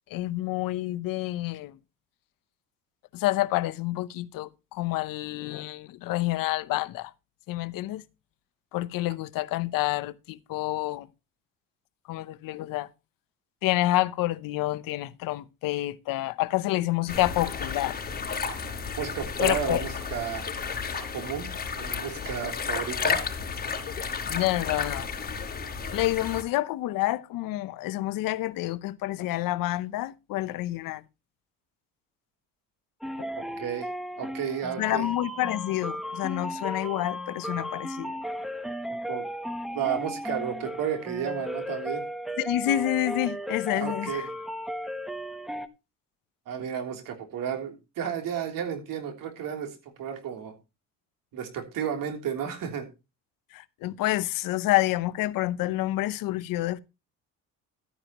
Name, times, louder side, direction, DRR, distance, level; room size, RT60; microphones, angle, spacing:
voice 1, 0.1-1.8 3.1-7.1 7.5-8.0 8.7-11.1 12.1-12.9 13.6-18.0 19.4-19.8 24.2-25.1 25.9-31.0 33.2-33.3 34.8-38.1 42.4-44.3 53.5-56.8, left 16 dB, 85° left, 0.8 m, -28 dB
sound 1, 17.1-26.4, left 5 dB, 25° left, 4.3 m, -32 dB
voice 2, 19.0-20.5 21.1-21.5 21.8-23.2 33.3-33.9 34.2-35.1 38.9-39.2 39.7-42.0 43.7-44.3 46.5-50.5 51.3-52.9, right 8 dB, 80° right, 3.3 m, -32 dB
sound 2, 33.0-45.7, equal, ahead, 1.0 m, -35 dB
13.0 x 9.7 x 3.0 m
cardioid pair, 100°, 33 cm